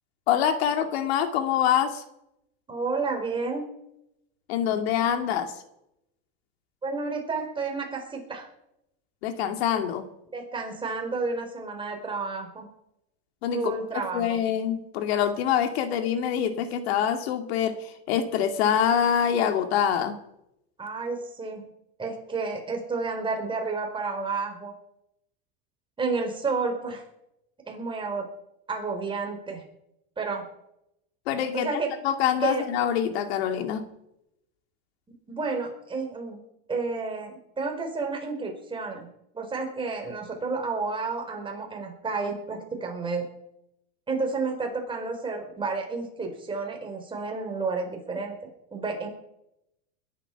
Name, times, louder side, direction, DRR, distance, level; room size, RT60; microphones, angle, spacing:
voice 1, 0.3-2.0 4.5-5.5 9.2-10.0 13.4-20.2 31.3-31.7 32.0-33.9, left 9 dB, 75° left, 7 dB, 2.3 m, -25 dB
voice 2, 2.7-3.6 6.8-8.5 10.3-12.7 13.5-14.4 20.8-21.6 22.0-24.7 26.0-27.0 27.7-28.2 28.7-29.6 30.2-30.5 31.5-31.9 32.4-32.7 35.3-36.4 36.7-39.1 39.3-43.2 44.1-49.1, right 4 dB, 15° right, 2 dB, 4.6 m, -31 dB
21.0 x 11.5 x 6.0 m, 0.82 s
supercardioid pair, 135°, 32 cm